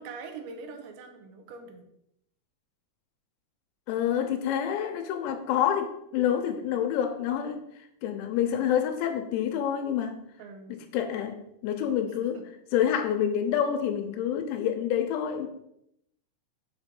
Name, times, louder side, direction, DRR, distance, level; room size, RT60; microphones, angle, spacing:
voice 1, 0.0-1.9 10.4-10.7 12.3-12.4, right 4 dB, 75° right, 5 dB, 2.5 m, -43 dB
voice 2, 3.9-10.3 10.7-12.5 12.7-15.5, left 9 dB, 85° left, 6 dB, 2.7 m, -28 dB
6.9 x 3.0 x 5.2 m, 0.78 s
omnidirectional pair, 5.2 m